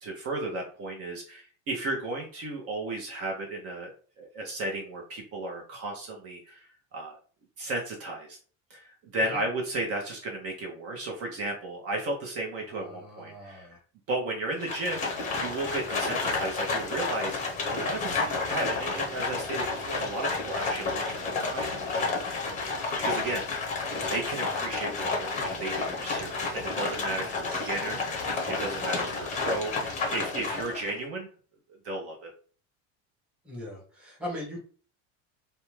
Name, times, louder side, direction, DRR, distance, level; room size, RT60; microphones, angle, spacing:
voice 1, 0.0-7.2 7.6-8.4 8.7-13.8 14.1-17.4 17.7-22.1 22.4-23.7 24.1-29.7 30.1-31.3 31.8-32.3, right 2 dB, 40° right, 0 dB, 0.8 m, -34 dB
voice 2, 12.7-13.8 27.2-27.7 33.4-34.6, left 1 dB, 5° right, -3 dB, 0.9 m, -41 dB
Livestock farm animals working animals, 14.6-31.0, left 3 dB, 20° left, 0.7 m, -31 dB
2.6 x 2.2 x 3.1 m, 0.40 s
cardioid pair, 145°, 34 cm